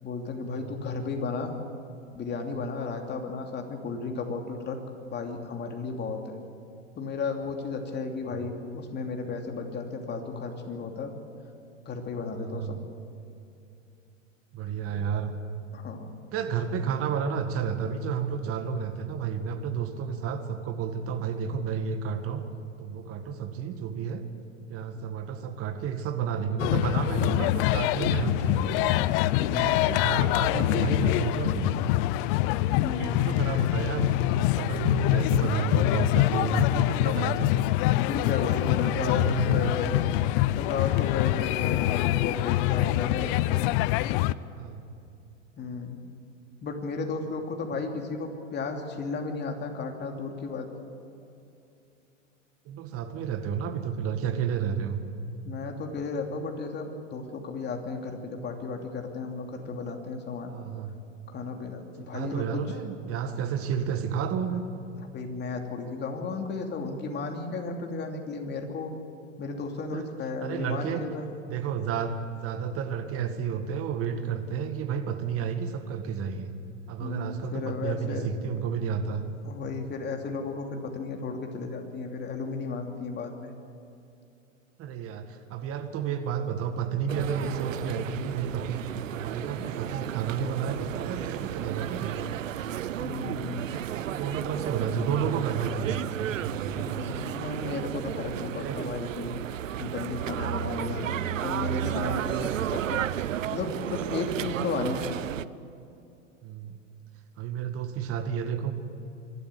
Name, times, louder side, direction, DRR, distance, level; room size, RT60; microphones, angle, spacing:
voice 1, 0.0-1.5 2.1-4.8 5.1-6.2 7.0-11.1 11.8-12.8 15.7-16.1 29.4-29.9 32.8-33.2 38.0-39.9 40.5-43.3 45.6-46.0 46.6-50.7 55.4-60.6 61.3-62.6 65.1-68.9 69.4-71.3 77.0-78.3 79.1-79.2 79.4-83.5 93.0-93.8 96.7-99.3 99.8-103.1 103.5-105.2, left 4 dB, 25° left, 3 dB, 2.8 m, -34 dB
voice 2, 12.3-12.8 14.5-15.4 16.3-22.4 22.8-24.2 24.7-29.0 29.5-31.8 33.0-37.7 38.3-39.7 44.6-44.8 52.7-55.0 60.5-60.9 62.1-64.7 69.9-70.1 70.4-71.0 71.5-76.5 76.9-79.3 84.8-92.2 93.6-96.0 96.3-97.0 98.6-98.9 106.4-106.8 107.4-108.7, right 7 dB, 35° right, 7 dB, 2.0 m, -31 dB
sound 1, 26.6-44.3, left 16 dB, 45° left, 0.6 m, -25 dB
sound 2, 87.1-105.4, right 11 dB, 85° right, 0.7 m, -33 dB
25.5 x 12.5 x 9.5 m, 2.7 s
hypercardioid pair, 105°, 38 cm